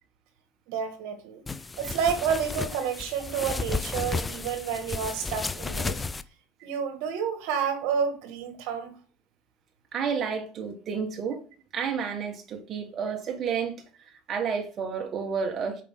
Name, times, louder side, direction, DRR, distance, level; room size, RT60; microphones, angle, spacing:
voice 1, 0.7-1.4 1.8-6.0 6.6-9.0, right 7 dB, 75° right, 1.8 m, -30 dB
sound 1, 1.5-6.2, left 4 dB, 15° left, 0.4 m, -33 dB
voice 2, 9.9-11.4 11.7-13.8 14.3-15.8, right 6 dB, 35° right, 1.6 m, -30 dB
8.3 x 5.0 x 3.7 m
cardioid pair, 150°, 0 cm